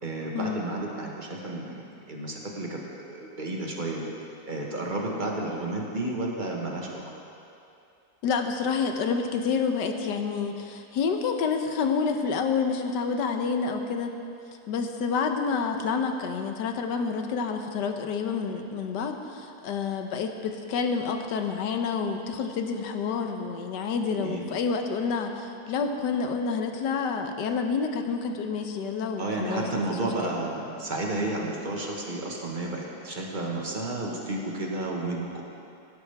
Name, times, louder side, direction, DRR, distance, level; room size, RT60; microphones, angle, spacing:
voice 1, 0.0-4.1 4.5-7.0 24.1-24.5 29.2-35.4, right 2 dB, 30° right, -1 dB, 1.4 m, -32 dB
voice 2, 8.2-14.1 14.7-30.0 30.2-30.3, left 5 dB, 85° left, 5 dB, 1.5 m, -28 dB
16.5 x 11.5 x 3.5 m, 2.6 s
omnidirectional pair, 1.8 m